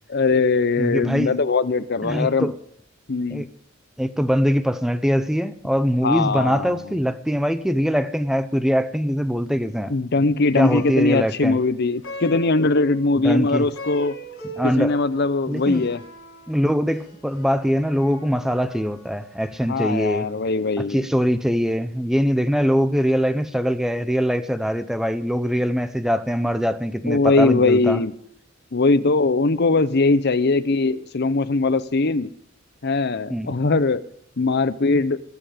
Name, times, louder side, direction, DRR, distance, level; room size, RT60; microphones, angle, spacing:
voice 1, 0.1-2.5 3.1-3.5 6.0-6.8 9.9-14.1 14.8-16.0 19.7-21.1 27.1-28.1 28.7-32.3 32.8-34.0 34.4-35.2, left 3 dB, 55° left, 0.8 m, -20 dB
voice 2, 0.8-1.4 2.0-2.6 3.3-3.5 4.0-10.0 10.6-11.6 13.2-13.7 14.6-15.0 15.5-15.9 16.5-20.3 20.9-28.0 33.3-33.5, equal, ahead, 0.7 m, -22 dB
Plucked string instrument, 10.4-19.9, equal, 80° left, 4.3 m, -41 dB
21.5 x 8.0 x 5.1 m
head